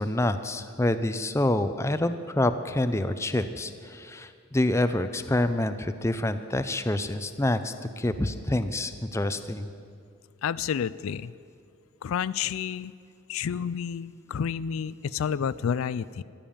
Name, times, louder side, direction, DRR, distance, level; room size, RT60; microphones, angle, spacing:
voice 1, 0.0-9.7, left 1 dB, 15° left, 10 dB, 0.5 m, -27 dB
voice 2, 10.4-11.3 12.0-12.9 13.3-16.2, left 7 dB, 75° left, 17 dB, 0.3 m, -30 dB
14.0 x 12.0 x 7.1 m, 2.3 s
head